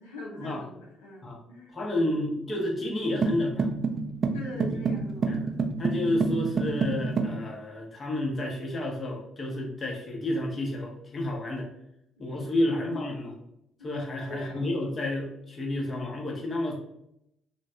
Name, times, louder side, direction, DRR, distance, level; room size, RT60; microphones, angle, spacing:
voice 1, 0.0-2.3 4.3-5.9 12.2-12.3 12.9-13.0 13.8-14.0 14.3-14.7, left 2 dB, 90° left, -5 dB, 0.5 m, -42 dB
voice 2, 1.7-3.7 4.7-5.0 5.3-5.4 5.8-11.7 12.2-13.3 13.8-16.7, left 1 dB, 35° left, -1 dB, 0.9 m, -30 dB
sound 1, 3.2-7.4, right 4 dB, 45° right, 0.4 m, -28 dB
3.1 x 2.2 x 2.7 m, 0.79 s
hypercardioid pair, 50°, 0 cm